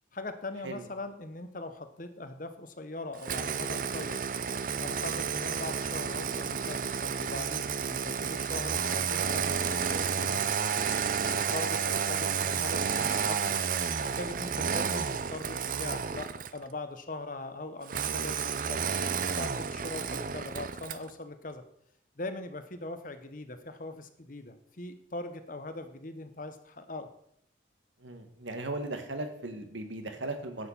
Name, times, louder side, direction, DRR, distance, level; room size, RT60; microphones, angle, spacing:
voice 1, 0.1-4.2 4.8-10.6 11.3-13.6 14.0-18.9 19.3-21.6 22.2-27.1, left 2 dB, 45° left, 9 dB, 1.0 m, -41 dB
Engine starting, 3.2-16.6 17.9-21.1, right 6 dB, 45° right, 0.5 m, -31 dB
voice 2, 28.0-30.7, right 2 dB, 80° right, 7 dB, 1.7 m, -37 dB
11.0 x 6.6 x 7.4 m, 0.71 s
head